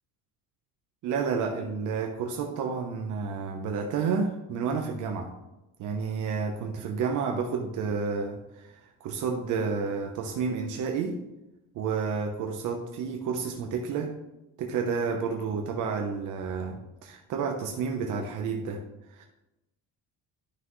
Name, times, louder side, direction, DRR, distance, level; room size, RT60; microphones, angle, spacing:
voice 1, 1.0-5.3 5.8-8.7 9.0-11.2 11.7-14.1 14.6-18.8 19.1-19.3, right 5 dB, 65° right, 2 dB, 1.0 m, -30 dB
12.0 x 6.0 x 3.2 m, 0.95 s
cardioid pair, 165°, 33 cm